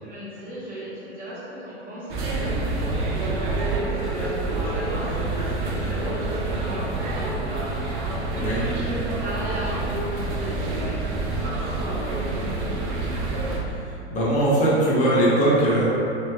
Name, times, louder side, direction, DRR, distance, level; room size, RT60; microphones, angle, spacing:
voice 1, 0.0-3.3 3.9-7.7 8.3-12.6, equal, 25° right, -10 dB, 1.0 m, -38 dB
sound 1, 2.1-13.6, right 2 dB, 45° right, 0.6 m, -27 dB
voice 2, 8.3-8.6 13.7-15.9, right 1 dB, 20° left, -7 dB, 0.6 m, -21 dB
3.2 x 2.0 x 2.2 m, 2.8 s
hypercardioid pair, 105°, 34 cm